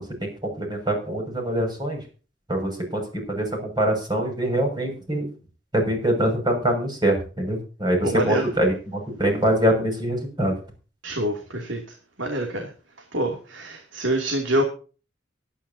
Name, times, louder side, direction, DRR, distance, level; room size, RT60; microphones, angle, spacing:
voice 1, 0.0-2.0 2.5-3.0 3.3-3.5 3.8-5.3 5.7-10.5, right 1 dB, 20° right, 3 dB, 6.3 m, -24 dB
voice 2, 8.0-8.5 11.0-11.8 12.2-12.6 13.1-14.6, right 1 dB, 80° right, 2 dB, 2.8 m, -25 dB
23.5 x 10.0 x 2.8 m, 0.36 s
head